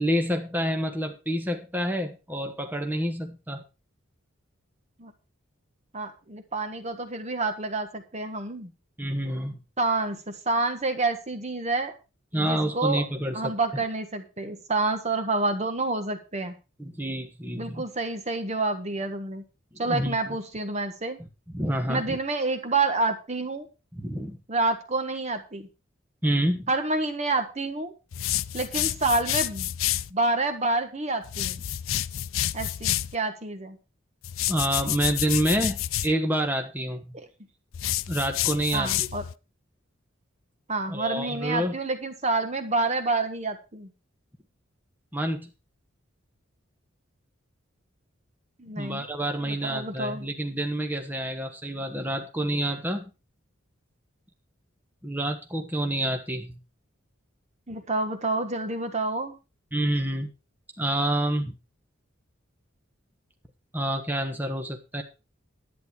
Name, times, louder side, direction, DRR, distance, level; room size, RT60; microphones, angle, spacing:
voice 1, 0.0-3.6 9.0-9.5 12.3-13.4 16.8-17.8 19.9-20.4 21.5-22.2 23.9-24.4 26.2-26.7 34.5-37.2 38.1-39.1 40.9-41.8 45.1-45.5 48.8-53.0 55.0-56.6 59.7-60.3 60.8-61.5 63.7-65.0, right 1 dB, 10° right, 4 dB, 1.3 m, -28 dB
voice 2, 5.9-8.7 9.8-12.0 12.3-13.0 13.3-16.6 17.6-19.4 19.8-21.2 21.9-23.6 24.5-25.7 26.7-27.9 28.5-29.7 30.1-31.6 32.5-33.8 37.1-37.3 38.7-39.2 40.7-43.9 48.6-49.0 49.4-50.3 57.7-59.4, right 3 dB, 35° right, 8 dB, 1.3 m, -28 dB
sound 1, 28.1-30.1 31.2-33.1 34.2-36.1 37.7-39.3, left 13 dB, 85° left, 0.5 m, -29 dB
11.0 x 9.2 x 4.7 m, 0.30 s
head